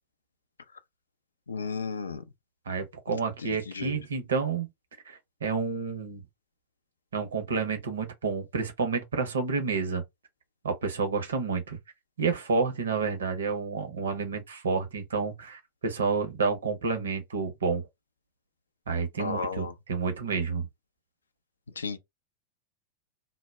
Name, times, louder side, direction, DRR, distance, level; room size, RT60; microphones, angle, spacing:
voice 1, 1.5-2.2 3.4-4.0 19.2-19.7 21.8-22.0, left 4 dB, 75° left, 0.4 m, -33 dB
voice 2, 2.7-4.7 5.1-6.2 7.1-10.0 10.6-11.8 12.2-17.9 18.9-20.7, right 5 dB, 70° right, 0.7 m, -29 dB
2.1 x 2.0 x 3.3 m
figure-of-eight pair, 90°, 0 cm